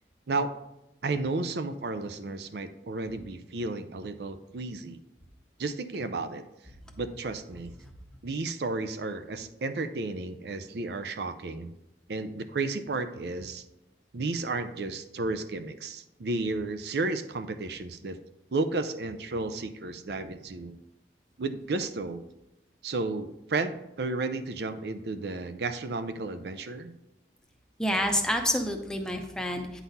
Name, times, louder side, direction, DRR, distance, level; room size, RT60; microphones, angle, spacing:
voice 1, 1.0-5.0 5.6-6.4 7.0-7.7 8.2-11.7 12.1-13.6 14.1-18.2 18.5-20.8 21.4-22.2 22.8-26.9, right 3 dB, 65° right, 9 dB, 0.5 m, -32 dB
voice 2, 27.8-29.8, left 1 dB, 5° left, 3 dB, 0.7 m, -28 dB
9.2 x 4.1 x 4.1 m, 0.91 s
head